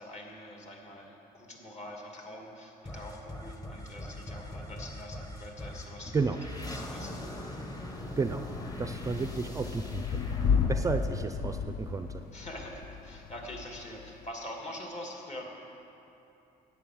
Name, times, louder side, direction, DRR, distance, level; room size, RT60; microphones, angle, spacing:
voice 1, 0.0-6.1 6.4-7.3 12.3-15.4, left 1 dB, 45° left, 0 dB, 2.5 m, -44 dB
sound 1, 2.8-12.2, left 1 dB, 20° left, 1.3 m, -42 dB
Thunder / Rain, 6.0-14.3, left 6 dB, 65° left, 0.6 m, -34 dB
voice 2, 8.2-8.5 8.8-12.2, right 4 dB, 20° right, 8 dB, 0.5 m, -32 dB
11.0 x 9.4 x 7.8 m, 2.9 s
cardioid pair, 110°, 17 cm